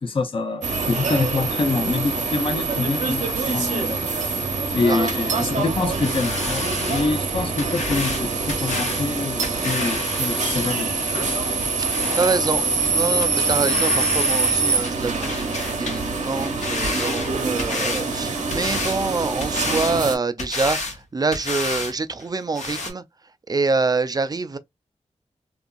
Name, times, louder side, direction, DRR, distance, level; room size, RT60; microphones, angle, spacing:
voice 1, 0.0-4.0 4.7-10.9, left 3 dB, 45° left, 0.6 m, -26 dB
sound 1, 0.6-20.2, right 4 dB, 80° right, 0.7 m, -25 dB
sound 2, 5.9-12.3 12.8-12.9 13.2-13.3 13.6-14.6 14.8-16.0 16.3-18.1 18.5-19.0 19.4-20.0 20.4-21.0 21.3-21.9 22.2-22.3 22.6-22.9, left 3 dB, 75° left, 1.0 m, -30 dB
voice 2, 12.1-12.6 12.9-23.0 23.5-24.6, right 3 dB, 30° right, 0.4 m, -25 dB
2.8 x 2.5 x 2.3 m
cardioid pair, 65°, 12 cm